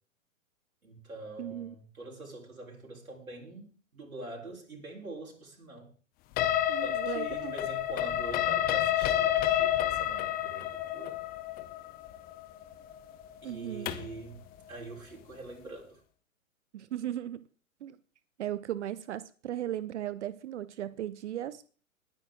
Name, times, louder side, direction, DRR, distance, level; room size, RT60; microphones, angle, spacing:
voice 1, 0.8-5.9 6.8-10.7 10.9-11.2 13.4-14.4 14.7-16.0, right 2 dB, 85° right, 4.1 m, -44 dB
voice 2, 1.4-1.7 6.7-7.5 13.4-13.9 16.7-17.5 17.8-18.0 18.4-21.7, right 12 dB, 55° right, 0.8 m, -37 dB
sound 1, 6.4-14.2, left 12 dB, 20° left, 0.8 m, -30 dB
21.0 x 9.3 x 3.7 m
figure-of-eight pair, 120°, 41 cm